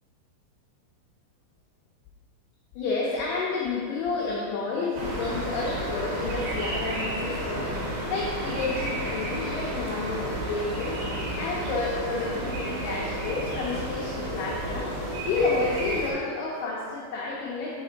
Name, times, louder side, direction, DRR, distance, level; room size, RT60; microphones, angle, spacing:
voice 1, 2.8-11.0 11.4-14.9 15.2-17.8, left 3 dB, 90° left, -4 dB, 2.2 m, -30 dB
sound 1, 4.9-16.1, right 1 dB, 65° right, 2.8 m, -31 dB
6.8 x 5.0 x 3.9 m, 2.1 s
omnidirectional pair, 5.5 m